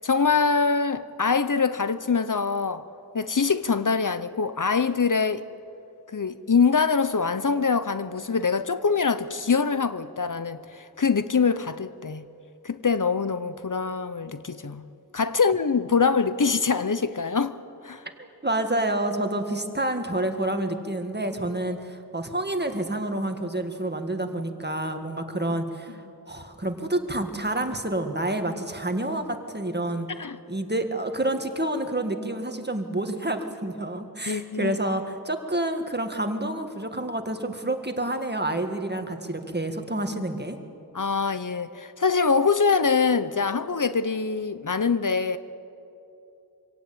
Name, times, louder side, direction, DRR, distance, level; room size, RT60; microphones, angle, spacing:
voice 1, 0.0-2.9 3.1-5.5 6.1-12.2 12.6-14.8 15.1-17.6 17.8-18.0 30.2-30.4 34.3-34.8 40.9-45.4, left 5 dB, 55° left, 0.7 m, -24 dB
voice 2, 18.2-30.1 30.5-40.6, right 1 dB, 25° right, 1.8 m, -28 dB
25.0 x 17.0 x 8.7 m
wide cardioid pair, 50°, 37 cm